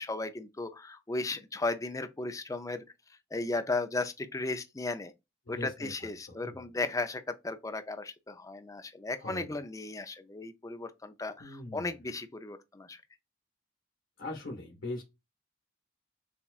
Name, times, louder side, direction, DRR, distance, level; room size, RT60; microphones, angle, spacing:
voice 1, 0.0-2.8 3.3-5.1 5.5-13.0, left 3 dB, 15° left, 0.5 m, -35 dB
voice 2, 5.5-5.9 6.4-6.5 9.2-9.6 11.4-12.0 14.2-15.0, left 2 dB, 80° left, 1.4 m, -40 dB
6.9 x 2.4 x 2.4 m
head